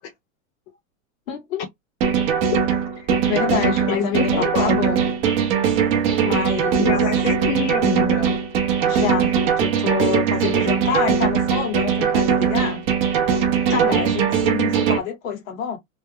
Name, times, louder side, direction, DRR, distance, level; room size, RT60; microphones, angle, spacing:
voice 1, 1.3-1.6 3.3-5.0 6.2-7.0 8.8-12.8 13.8-15.8, left 8 dB, 85° left, 1.9 m, -27 dB
sound 1, 2.0-15.0, right 7 dB, 15° right, 0.4 m, -20 dB
voice 2, 3.9-4.8 6.8-8.3 13.7-14.1, left 5 dB, 60° left, 1.3 m, -25 dB
3.3 x 2.2 x 3.3 m
supercardioid pair, 170°, 39 cm